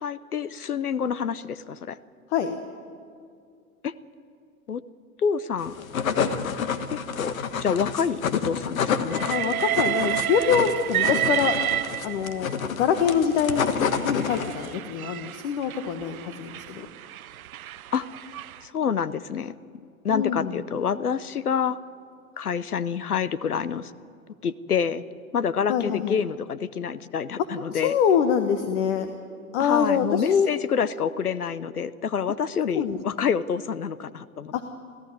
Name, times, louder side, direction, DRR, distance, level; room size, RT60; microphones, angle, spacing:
voice 1, 0.0-2.0 3.8-3.9 4.7-4.8 5.2-5.8 6.9-9.3 17.9-18.1 18.6-19.5 20.0-21.8 22.4-23.9 24.4-25.0 25.3-28.0 29.6-34.7, left 7 dB, 80° left, 18 dB, 0.9 m, -27 dB
sound 1, 5.6-14.7, left 7 dB, 65° left, 1.5 m, -29 dB
Train, 9.1-12.5 13.4-18.6, right 12 dB, 70° right, 0.7 m, -30 dB
voice 2, 9.3-11.5 12.0-12.5 12.8-16.9 20.1-20.5 25.7-26.1 27.7-29.1 29.5-30.5 32.7-33.3 34.5-34.7, left 7 dB, 50° left, 8 dB, 1.5 m, -24 dB
26.5 x 15.0 x 9.6 m, 2.2 s
figure-of-eight pair, 100°, 44 cm